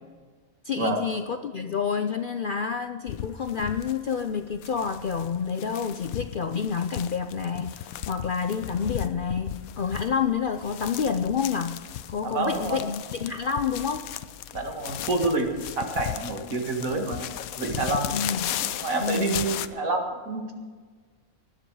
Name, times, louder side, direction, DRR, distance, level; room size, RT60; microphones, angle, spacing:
voice 1, 0.6-14.1 18.1-18.6 19.0-19.4, left 6 dB, 60° left, 8 dB, 0.5 m, -29 dB
sound 1, 3.1-19.7, left 11 dB, 85° left, 1.1 m, -36 dB
voice 2, 12.2-12.8 14.5-15.5 15.8-17.3 17.6-18.2 18.6-20.5, right 2 dB, 75° right, 3 dB, 2.3 m, -28 dB
19.5 x 11.0 x 4.8 m, 1.5 s
omnidirectional pair, 1.5 m